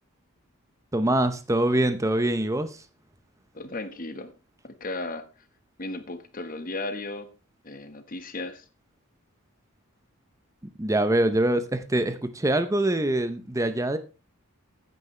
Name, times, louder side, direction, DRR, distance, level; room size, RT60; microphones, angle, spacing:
voice 1, 0.9-2.8 10.8-14.0, right 1 dB, 15° right, 10 dB, 0.7 m, -24 dB
voice 2, 3.5-4.3 4.6-5.3 5.8-7.3 7.6-8.6, left 2 dB, 40° left, 10 dB, 1.4 m, -35 dB
15.0 x 9.4 x 3.2 m, 0.30 s
head